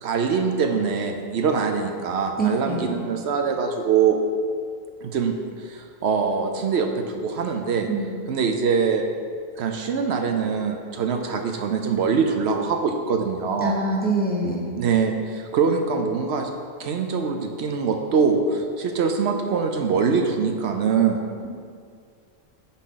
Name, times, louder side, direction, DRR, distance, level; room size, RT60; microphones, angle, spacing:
voice 1, 0.0-4.2 5.0-5.3 5.7-7.9 8.3-9.0 9.6-13.7 14.8-16.5 16.8-21.2, right 5 dB, 75° right, 4 dB, 0.9 m, -23 dB
voice 2, 2.4-2.9 7.8-8.2 13.6-14.7, right 2 dB, 10° left, -3 dB, 0.8 m, -25 dB
9.9 x 4.1 x 3.8 m, 2.1 s
omnidirectional pair, 1.2 m